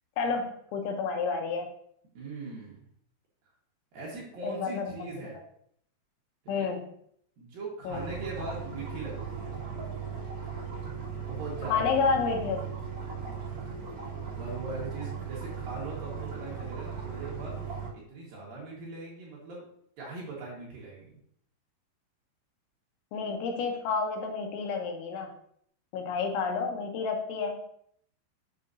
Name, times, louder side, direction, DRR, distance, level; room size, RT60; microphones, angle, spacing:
voice 1, 0.2-1.7 4.4-5.1 6.5-6.9 7.8-8.1 11.7-12.6 23.1-25.3 25.9-27.7, left 5 dB, 80° left, 4 dB, 3.2 m, -30 dB
voice 2, 2.1-2.8 3.9-5.4 6.4-6.7 7.4-9.5 11.2-12.0 13.1-13.5 14.3-17.5 17.9-19.7 20.0-21.2, right 3 dB, 60° right, -4 dB, 2.9 m, -40 dB
sound 1, 7.9-17.9, right 6 dB, 40° right, 2.2 m, -38 dB
7.7 x 6.9 x 2.7 m, 0.67 s
omnidirectional pair, 5.4 m